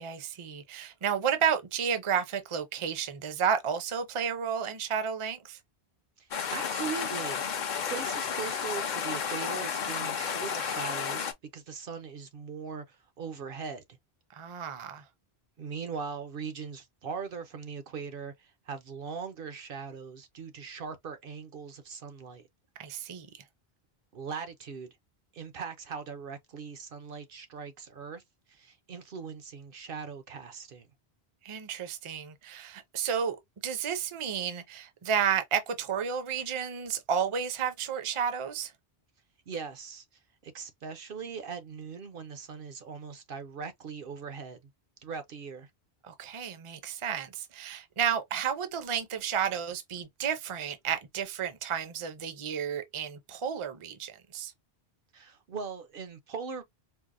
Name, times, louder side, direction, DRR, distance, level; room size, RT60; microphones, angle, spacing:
voice 1, 0.0-5.6 14.3-15.0 22.8-23.4 31.4-33.4 33.6-38.7 46.0-54.5, right 7 dB, 35° right, 0.6 m, -32 dB
voice 2, 6.2-7.4 7.8-14.0 15.6-22.4 24.1-24.9 25.3-28.2 28.5-30.9 39.5-40.0 40.4-44.7 45.0-45.7 55.1-56.6, right 6 dB, 65° right, 0.8 m, -40 dB
sound 1, 6.3-11.3, left 7 dB, 55° left, 0.6 m, -32 dB
4.5 x 2.1 x 2.5 m
omnidirectional pair, 1.1 m